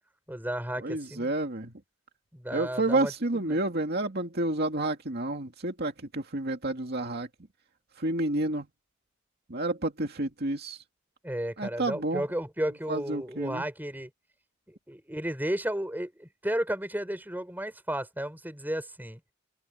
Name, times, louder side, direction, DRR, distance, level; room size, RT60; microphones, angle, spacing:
voice 1, 0.3-1.3 2.3-3.6 11.2-14.1 14.9-19.2, right 1 dB, 10° right, 5.9 m, -33 dB
voice 2, 0.8-1.7 2.5-7.3 8.0-8.7 9.5-10.8 11.6-12.2 12.9-13.6, right 2 dB, 55° right, 2.3 m, -30 dB
open air
head